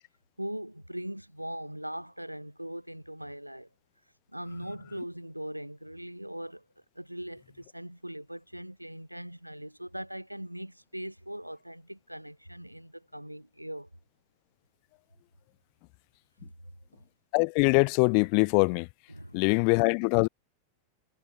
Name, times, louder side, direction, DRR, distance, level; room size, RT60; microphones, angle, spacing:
voice 1, 0.4-3.7 4.3-6.7 6.9-13.9 19.1-19.6, equal, 90° right, 5.6 m, -40 dB
voice 2, 17.3-18.9 19.3-20.3, left 40 dB or more, 45° left, 0.7 m, -23 dB
figure-of-eight pair, 90°, 0 cm